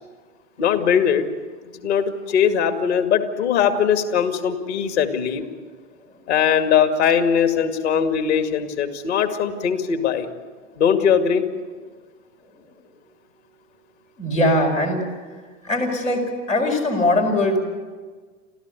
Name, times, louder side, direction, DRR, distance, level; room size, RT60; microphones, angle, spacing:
voice 1, 0.6-1.3 1.7-5.5 6.3-10.3 10.8-11.4, left 7 dB, 60° left, 7 dB, 2.3 m, -20 dB
voice 2, 14.2-15.1 15.6-17.6, left 1 dB, 90° left, -1 dB, 5.1 m, -21 dB
29.0 x 14.0 x 8.4 m, 1.5 s
figure-of-eight pair, 90°, 38 cm